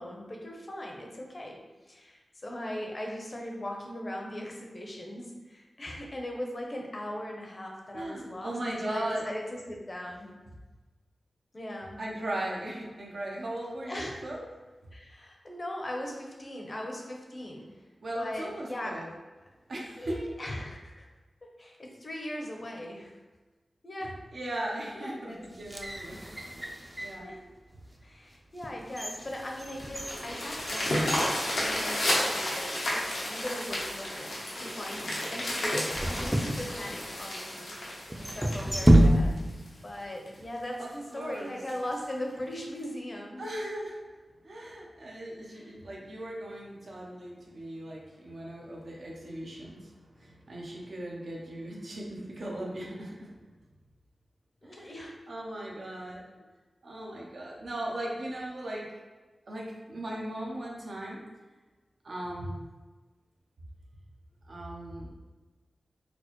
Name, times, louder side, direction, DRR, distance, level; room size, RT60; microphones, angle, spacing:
voice 1, 0.0-1.6 1.9-10.3 11.5-12.0 13.8-14.2 14.9-17.6 18.1-19.0 20.0-21.1 21.4-23.2 23.8-24.2 24.9-25.4 27.2-27.4 28.0-31.1 31.6-37.8 38.4-39.3 39.8-43.5 45.5-45.8 54.6-55.2, left 1 dB, 45° left, 0 dB, 0.7 m, -39 dB
voice 2, 7.9-9.2 12.0-14.4 18.0-19.1 19.7-20.1 24.0-26.2 26.5-26.7 27.0-27.3 40.8-41.6 43.4-44.0 44.4-53.3 54.6-56.2 56.8-58.8 59.5-61.2 62.0-62.6 64.5-65.1, right 1 dB, 75° right, -3 dB, 0.8 m, -38 dB
sound 1, 25.5-27.3 27.9-28.0 28.6-32.3 32.6-32.7 33.5-33.9 35.9-37.2 38.1-39.6 39.9-40.0, right 1 dB, 15° right, 0.5 m, -28 dB
sound 2, 29.2-39.7 40.3-40.4 40.8-40.9 41.2-41.3 41.7-41.9 42.8-42.9, left 1 dB, 90° left, 0.8 m, -32 dB
4.2 x 2.1 x 3.0 m, 1.2 s
cardioid pair, 50°, 0 cm